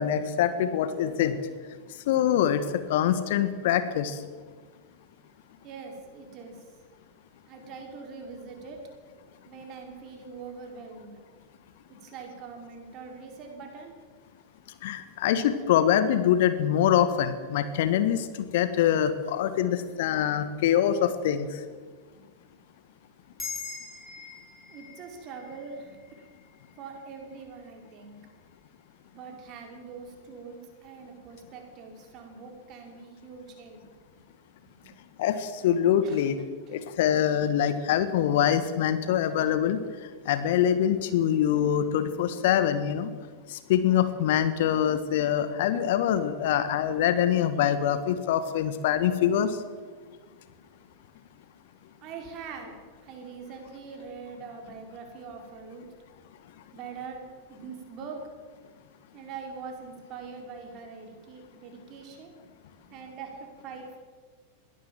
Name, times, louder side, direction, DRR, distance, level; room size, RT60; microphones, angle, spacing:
voice 1, 0.0-1.4 2.1-2.6 2.9-4.2 14.8-18.3 18.5-21.5 35.2-36.4 36.7-39.8 40.2-43.1 43.5-49.6, left 10 dB, 55° left, 11 dB, 1.6 m, -24 dB
voice 2, 5.6-6.8 7.5-8.8 9.4-11.2 11.9-13.9 22.1-22.2 24.7-26.3 26.8-28.2 29.1-33.8 34.8-34.9 36.0-36.3 36.7-36.8 52.0-52.7 53.0-55.8 56.7-58.2 59.1-62.3 62.8-64.0, right 5 dB, 35° right, 2 dB, 5.6 m, -43 dB
sound 1, 23.4-28.1, left 5 dB, 10° left, 7.3 m, -43 dB
22.0 x 16.5 x 7.5 m, 1.5 s
figure-of-eight pair, 90°, 0 cm